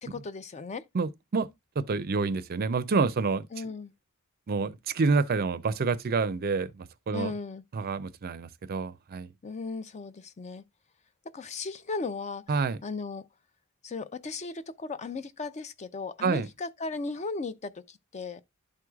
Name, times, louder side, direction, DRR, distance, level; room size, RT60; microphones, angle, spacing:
voice 1, 0.0-0.8 3.5-3.9 7.1-7.6 9.4-10.6 11.3-12.5 12.8-13.3 13.8-18.4, left 3 dB, 30° left, 0.5 m, -36 dB
voice 2, 0.9-1.5 1.8-3.5 4.5-7.3 7.7-9.3 12.5-12.8 16.2-16.5, right 4 dB, 45° right, 0.5 m, -28 dB
11.5 x 4.6 x 2.3 m
head